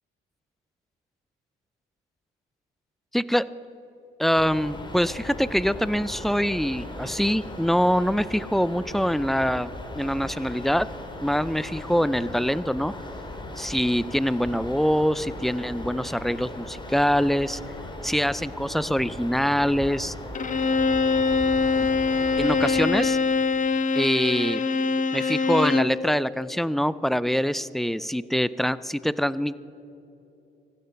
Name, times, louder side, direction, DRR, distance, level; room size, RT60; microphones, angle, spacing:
voice 1, 4.2-10.9 11.2-12.9 13.6-17.6 18.0-20.1 22.4-23.2 24.0-24.6 25.1-29.6, equal, ahead, 18 dB, 0.3 m, -24 dB
sound 1, 4.3-22.9, left 1 dB, 25° left, 2.2 m, -38 dB
Bowed string instrument, 20.3-26.0, left 4 dB, 40° left, 0.9 m, -23 dB
15.5 x 12.0 x 5.7 m, 3.0 s
cardioid pair, 90°, 20 cm